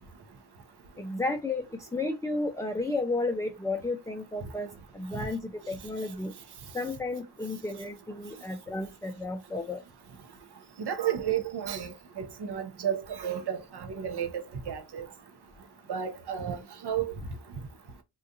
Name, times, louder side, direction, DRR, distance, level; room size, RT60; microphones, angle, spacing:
voice 1, 1.0-4.7 4.9-6.3 6.7-9.8, left 2 dB, 5° left, 0.4 m, -32 dB
voice 2, 10.8-15.0 15.9-17.1, right 9 dB, 60° right, 0.8 m, -32 dB
3.7 x 2.3 x 2.6 m
cardioid pair, 40°, 45 cm